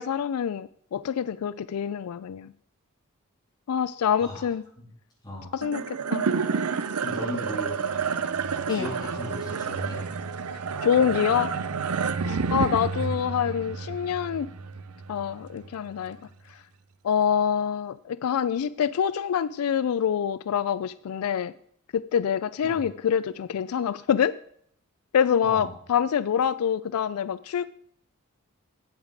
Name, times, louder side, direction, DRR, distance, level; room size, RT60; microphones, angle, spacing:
voice 1, 0.0-2.5 3.7-4.6 5.5-6.3 8.7-8.9 10.8-11.5 12.3-14.5 15.1-16.2 17.0-21.5 21.9-24.4 25.1-27.7, left 8 dB, 85° left, 16 dB, 0.4 m, -26 dB
voice 2, 5.2-5.5 6.7-7.8 8.7-10.1 12.3-12.5 22.6-22.9 25.4-25.7, equal, 20° left, -4 dB, 3.8 m, -37 dB
sound 1, 5.6-16.1, right 5 dB, 90° right, 0.7 m, -30 dB
8.9 x 8.2 x 4.9 m, 0.64 s
head